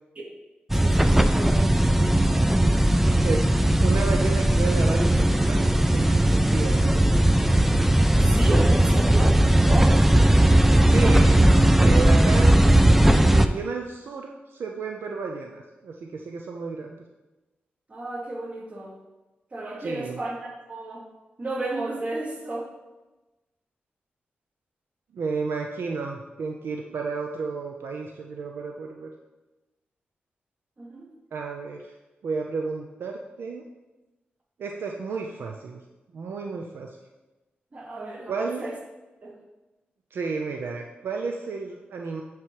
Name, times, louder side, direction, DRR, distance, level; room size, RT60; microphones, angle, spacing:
sound 1, 0.7-13.5, right 1 dB, 5° right, 0.3 m, -18 dB
voice 1, 0.7-2.4 8.2-10.1 17.9-19.0 19.5-21.1 21.4-22.7 30.8-31.1 37.7-38.8 39.2-39.3, right 2 dB, 35° right, -1 dB, 1.3 m, -33 dB
voice 2, 3.8-7.3 10.8-11.5 11.8-17.0 19.8-20.2 25.1-29.1 31.3-31.9 32.2-33.6 34.6-35.8 36.1-36.9 38.3-38.7 40.1-42.2, right 4 dB, 75° right, 1 dB, 0.6 m, -32 dB
9.1 x 3.1 x 4.7 m, 1.1 s
wide cardioid pair, 130°, 4 cm